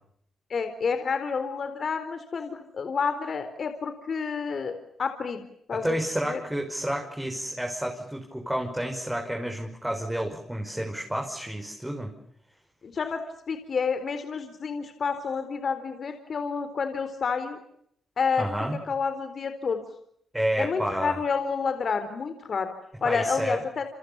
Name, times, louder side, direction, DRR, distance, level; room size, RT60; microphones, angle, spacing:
voice 1, 0.5-5.4 5.7-6.0 6.3-6.4 12.8-13.2 13.5-17.6 18.2-18.5 18.9-19.8 20.6-22.7 23.0-23.9, left 5 dB, 55° left, 9 dB, 4.1 m, -29 dB
voice 2, 5.7-12.1 18.4-18.8 20.3-21.2 23.0-23.6, right 1 dB, 5° right, 2 dB, 5.8 m, -30 dB
29.5 x 27.5 x 7.1 m, 0.71 s
cardioid pair, 75°, 0 cm